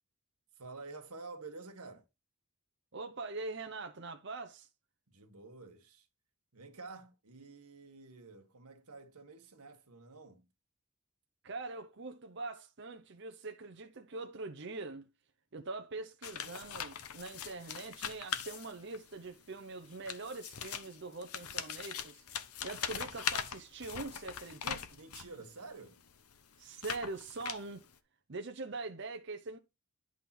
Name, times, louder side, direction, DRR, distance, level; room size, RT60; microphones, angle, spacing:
voice 1, 0.6-2.0 5.1-6.1 6.5-10.5 24.9-26.0, right 3 dB, 90° right, 1.7 m, -50 dB
voice 2, 2.9-4.7 11.4-15.1 15.5-22.2 22.6-24.9 26.6-27.8 28.3-29.6, right 3 dB, 50° right, 0.7 m, -43 dB
sound 1, 16.2-19.1 19.8-25.4 26.0-27.9, left 8 dB, 80° left, 0.9 m, -41 dB
11.0 x 3.6 x 6.0 m
head